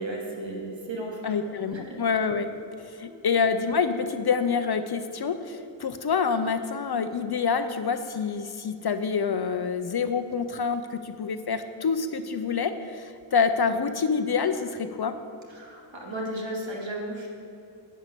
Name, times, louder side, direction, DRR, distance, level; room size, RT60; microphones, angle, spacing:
voice 1, 0.0-1.3 1.7-2.0 15.5-17.3, right 1 dB, 75° right, -1 dB, 2.4 m, -34 dB
voice 2, 1.2-2.5 2.8-15.1, left 5 dB, 55° left, 9 dB, 0.6 m, -27 dB
11.0 x 5.6 x 8.2 m, 2.7 s
wide cardioid pair, 110°, 46 cm